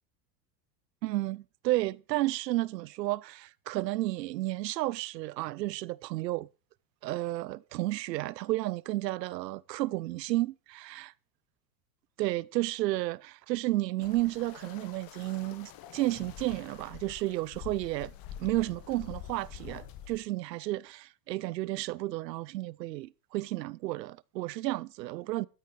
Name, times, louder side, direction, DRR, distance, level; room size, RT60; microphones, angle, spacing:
voice 1, 1.0-6.5 7.0-11.1 12.2-18.1 18.4-25.5, right 17 dB, 80° right, 0.6 m, -32 dB
sound 1, 14.0-20.2, left 10 dB, 45° left, 1.8 m, -46 dB
13.5 x 9.3 x 4.8 m
hypercardioid pair, 95°, 49 cm